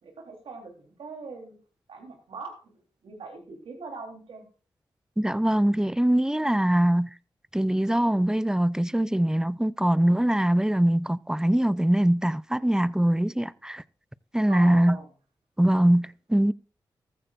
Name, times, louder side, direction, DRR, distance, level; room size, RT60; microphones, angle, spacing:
voice 1, 0.0-1.6 1.9-4.5 14.5-15.1, right 3 dB, 80° right, 3.8 m, -41 dB
voice 2, 5.2-7.1 7.5-13.8 14.3-15.0 15.6-16.5, right 1 dB, 5° right, 0.6 m, -22 dB
14.5 x 14.5 x 2.5 m
cardioid pair, 45°, 9 cm